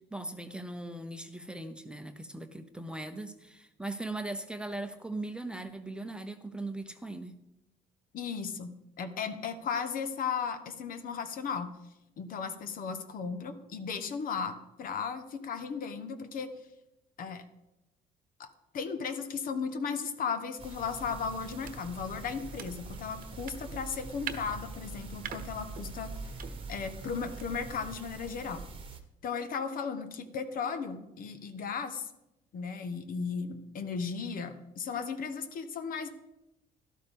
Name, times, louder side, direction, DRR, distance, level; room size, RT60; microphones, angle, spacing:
voice 1, 0.1-7.4, right 2 dB, 5° right, 7 dB, 0.8 m, -39 dB
voice 2, 8.1-11.7 12.2-16.5 17.2-17.4 18.4-18.5 18.7-26.1 26.7-28.6 29.2-32.1 32.5-36.1, left 6 dB, 55° left, 9 dB, 1.2 m, -36 dB
sound 1, 20.6-29.0, right 3 dB, 30° right, 1.2 m, -44 dB
sound 2, 20.8-28.1, right 7 dB, 55° right, 1.0 m, -46 dB
12.5 x 12.0 x 3.6 m, 0.89 s
cardioid pair, 110°, 17 cm